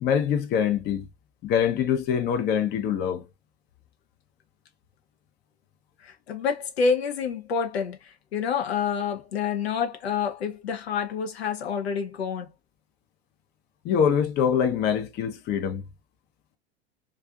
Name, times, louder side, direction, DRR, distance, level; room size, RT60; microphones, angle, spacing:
voice 1, 0.0-1.1 1.4-3.3 13.8-15.8, left 8 dB, 30° left, 0.6 m, -24 dB
voice 2, 6.0-12.5, left 6 dB, 75° left, 0.7 m, -28 dB
2.5 x 2.4 x 2.4 m
figure-of-eight pair, 85°, 32 cm